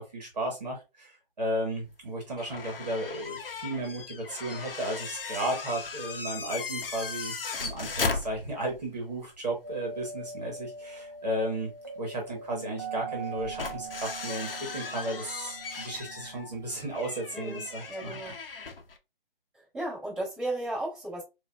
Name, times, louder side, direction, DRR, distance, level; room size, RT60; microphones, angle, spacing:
voice 1, 0.0-7.3 7.6-18.2, right 1 dB, 45° right, 0 dB, 1.3 m, -34 dB
sound 1, 2.4-8.8 9.2-9.3 11.3-11.4 13.2-19.0, left 4 dB, 70° left, 0.8 m, -37 dB
sound 2, 9.6-18.1, right 4 dB, 25° right, 0.5 m, -42 dB
voice 2, 17.3-18.4 19.5-21.2, right 1 dB, 5° right, -15 dB, 1.6 m, -35 dB
4.8 x 2.5 x 2.4 m, 0.26 s
hypercardioid pair, 175°, 29 cm